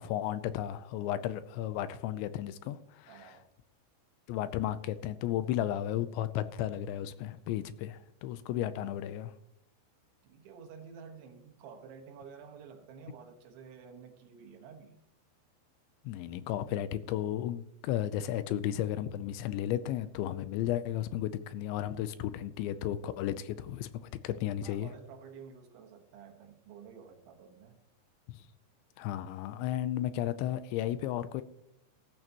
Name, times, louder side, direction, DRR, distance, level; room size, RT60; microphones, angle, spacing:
voice 1, 0.0-3.4 4.3-9.3 16.1-23.9 24.2-24.9 28.3-28.4 29.0-31.4, left 12 dB, 85° left, 2.9 m, -34 dB
voice 2, 3.1-3.5 10.2-15.0 24.6-27.8, right 6 dB, 75° right, 3.8 m, -51 dB
15.5 x 12.5 x 3.0 m
omnidirectional pair, 5.4 m